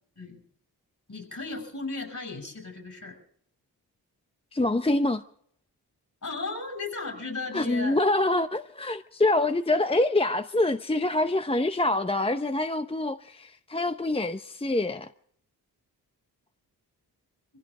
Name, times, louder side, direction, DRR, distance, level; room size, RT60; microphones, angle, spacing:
voice 1, 1.1-3.2 6.2-8.0, left 3 dB, 50° left, 6.9 m, -35 dB
voice 2, 4.5-5.2 7.5-15.1, left 2 dB, 15° left, 0.8 m, -25 dB
24.0 x 16.0 x 3.7 m
cardioid pair, 50°, 39 cm